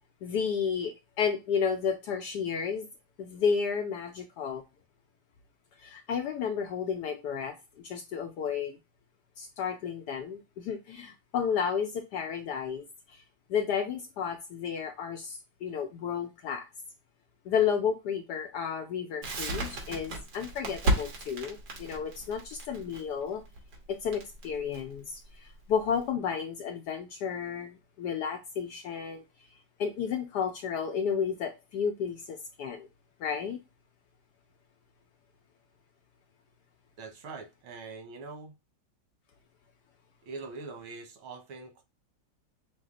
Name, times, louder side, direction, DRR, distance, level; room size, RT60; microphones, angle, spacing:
voice 1, 0.2-2.9 3.2-4.6 5.8-7.5 7.8-8.8 9.4-13.2 13.5-16.7 17.5-23.4 23.9-29.2 29.8-32.9 33.2-33.6, left 7 dB, 75° left, 0.9 m, -32 dB
Crackle, 19.2-26.0, right 1 dB, 65° right, 1.9 m, -34 dB
voice 2, 37.0-38.6 40.2-41.8, right 4 dB, 90° right, 1.9 m, -43 dB
5.9 x 2.1 x 3.6 m
omnidirectional pair, 2.2 m